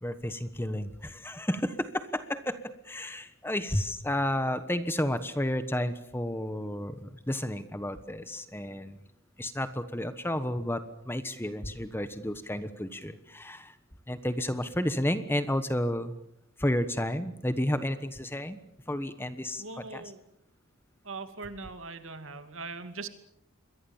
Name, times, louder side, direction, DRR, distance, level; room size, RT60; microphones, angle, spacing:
voice 1, 0.0-9.0 9.4-13.8 14.1-16.2 16.6-18.6 18.9-19.6 19.9-20.0, left 1 dB, 10° left, 11 dB, 1.2 m, -31 dB
voice 2, 19.6-20.3 21.0-23.1, right 4 dB, 65° right, 9 dB, 2.6 m, -41 dB
28.5 x 22.5 x 7.3 m, 0.76 s
head